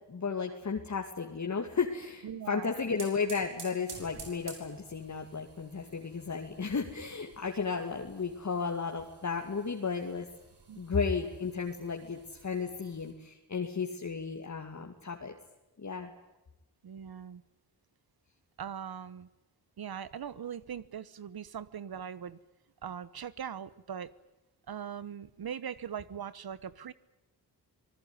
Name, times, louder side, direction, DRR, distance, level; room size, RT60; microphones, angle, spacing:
voice 1, 0.1-10.3 10.8-15.3 15.8-16.1, left 5 dB, 45° left, 2 dB, 2.5 m, -34 dB
voice 2, 2.2-2.7 10.7-10.8 16.8-17.4 18.6-19.3 19.8-22.4 22.8-24.1 24.7-26.9, right 8 dB, 65° right, 17 dB, 1.1 m, -40 dB
sound 1, 2.5-13.1, right 4 dB, 90° right, 6.7 m, -53 dB
25.5 x 20.0 x 9.8 m, 0.99 s
wide cardioid pair, 100°, 40 cm